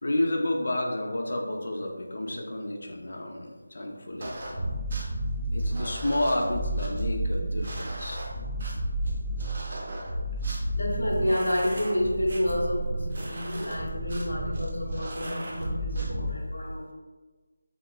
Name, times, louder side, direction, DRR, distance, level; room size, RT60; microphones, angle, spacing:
voice 1, 0.0-4.3 5.5-8.2, left 1 dB, 60° left, 1 dB, 0.5 m, -30 dB
sound 1, 4.2-16.3, right 1 dB, 40° right, 0.5 m, -32 dB
voice 2, 10.7-16.9, left 1 dB, 85° left, -2 dB, 0.9 m, -29 dB
2.9 x 2.9 x 2.3 m, 1.3 s
figure-of-eight pair, 170°, 0 cm